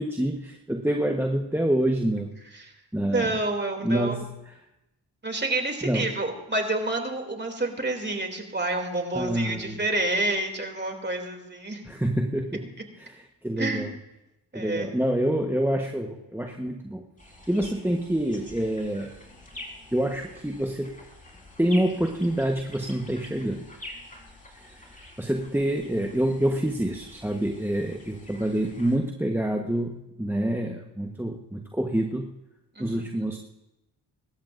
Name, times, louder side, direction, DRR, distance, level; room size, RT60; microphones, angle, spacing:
voice 1, 0.0-2.3 2.9-3.3 3.8-4.3 5.8-6.1 9.1-9.8 11.9-12.7 13.0-13.2 13.4-13.9 14.5-17.0 17.5-19.1 19.9-20.9 21.6-23.6 24.6-24.8 25.2-32.3 32.8-33.4, right 1 dB, 5° right, 2 dB, 1.2 m, -27 dB
voice 2, 3.0-4.2 5.2-11.8 13.6-13.8 14.5-14.8 32.8-33.0, right 2 dB, 25° right, 3 dB, 2.8 m, -28 dB
sound 1, 17.2-29.0, left 1 dB, 20° left, 4.2 m, -47 dB
24.5 x 13.0 x 2.6 m, 0.93 s
supercardioid pair, 55°, 42 cm